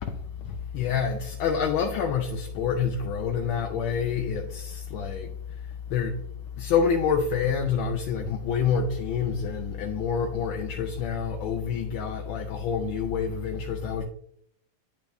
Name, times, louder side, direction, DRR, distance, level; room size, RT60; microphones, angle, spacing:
voice 1, 0.4-5.3 5.9-6.2 6.6-14.0, left 6 dB, 80° left, 1.4 m, -27 dB
10.5 x 5.3 x 2.6 m
omnidirectional pair, 2.3 m